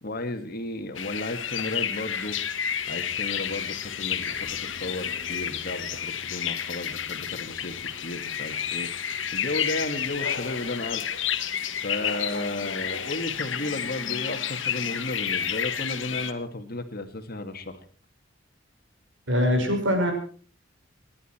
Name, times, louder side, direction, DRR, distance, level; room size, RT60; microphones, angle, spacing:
voice 1, 0.0-2.4 2.9-9.0 9.3-11.1 11.8-17.8, left 2 dB, 55° left, 8 dB, 2.0 m, -34 dB
sound 1, 0.9-16.3, left 8 dB, 85° left, 1.5 m, -30 dB
voice 2, 19.3-20.1, equal, 80° right, 3 dB, 5.9 m, -22 dB
29.0 x 11.0 x 4.4 m, 0.42 s
head